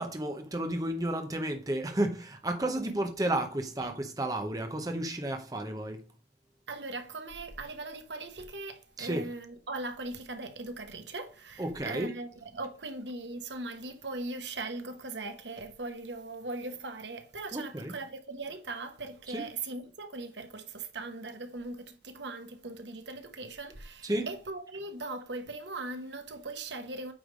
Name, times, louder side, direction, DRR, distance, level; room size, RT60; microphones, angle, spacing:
voice 1, 0.0-6.0 9.0-9.3 11.6-12.1 17.5-18.0 19.3-19.4 24.0-24.3, right 1 dB, 20° right, 0.8 m, -32 dB
voice 2, 6.7-27.1, right 2 dB, 85° right, 1.1 m, -39 dB
8.7 x 3.3 x 5.2 m
head